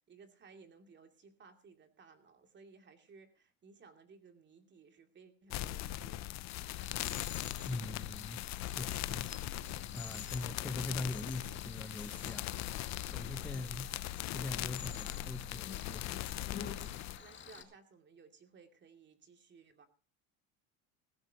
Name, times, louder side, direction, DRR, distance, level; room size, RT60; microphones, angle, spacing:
voice 1, 0.0-6.5 10.1-10.6 13.2-14.0 16.6-19.9, right 5 dB, 30° right, 2.6 m, -60 dB
sound 1, 5.5-17.2, left 14 dB, 45° left, 0.7 m, -40 dB
Cricket, 6.5-17.6, left 8 dB, 30° left, 2.3 m, -50 dB
voice 2, 7.6-9.3 9.7-12.5 13.1-13.9 14.3-16.1, left 2 dB, 5° left, 0.5 m, -42 dB
17.5 x 15.0 x 2.9 m
supercardioid pair, 130°, 39 cm